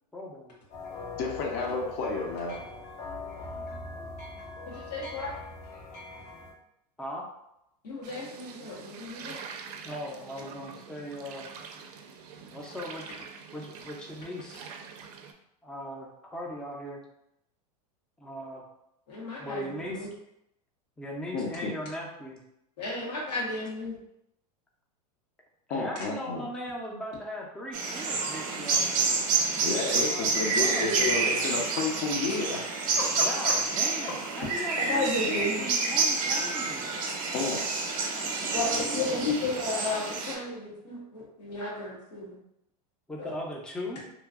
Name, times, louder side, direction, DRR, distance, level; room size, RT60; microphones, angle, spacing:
voice 1, 0.1-0.6 7.0-7.2 9.8-11.5 12.5-13.0 13.5-14.7 15.6-17.0 18.2-18.6 19.4-20.1 21.0-22.4 25.7-29.2 30.1-30.9 33.2-37.0 38.2-39.3 43.1-44.0, equal, 5° left, -1 dB, 0.4 m, -39 dB
sound 1, 0.7-6.5, left 3 dB, 65° left, 1.4 m, -41 dB
voice 2, 1.2-2.6 21.3-21.7 25.7-26.5 29.6-32.6 33.0-33.5 37.3-37.6, left 4 dB, 50° left, 0 dB, 0.6 m, -31 dB
voice 3, 4.7-5.4 7.8-9.4 19.1-20.1 22.8-23.9 30.7-31.1 34.8-35.6 38.5-42.4 43.2-43.3, left 2 dB, 90° left, -4 dB, 1.2 m, -33 dB
sound 2, 8.0-15.3, right 6 dB, 75° right, 0.4 m, -45 dB
sound 3, 27.7-40.4, right 4 dB, 40° right, 0.7 m, -28 dB
2.9 x 2.5 x 2.4 m, 0.80 s
hypercardioid pair, 115°, 20 cm